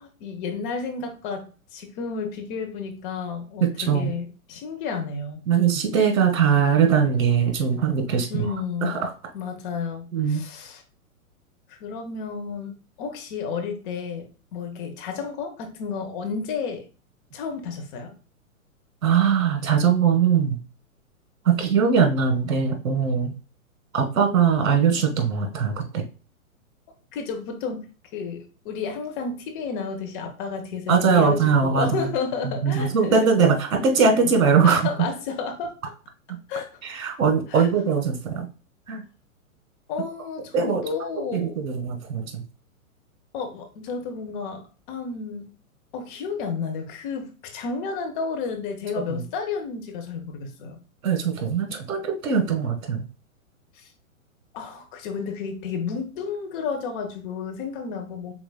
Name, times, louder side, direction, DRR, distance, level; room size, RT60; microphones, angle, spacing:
voice 1, 0.0-5.4 8.3-9.0 9.3-10.8 11.7-16.9 17.3-18.1 27.1-27.9 28.1-33.3 34.6-35.7 36.5-36.8 37.5-37.7 39.9-41.6 43.3-45.4 45.9-50.8 53.8-53.9 54.5-58.3, left 5 dB, 35° left, 4 dB, 1.0 m, -32 dB
voice 2, 3.6-4.1 5.5-8.5 8.8-9.1 10.1-10.4 19.0-20.6 21.4-23.3 23.9-26.0 30.9-32.1 32.4-34.8 36.8-38.5 38.9-39.0 40.5-40.8 41.3-42.4 49.1-49.2 51.0-53.1, right 6 dB, 70° right, 4 dB, 1.5 m, -21 dB
4.9 x 3.8 x 2.2 m, 0.34 s
hypercardioid pair, 120°, 42 cm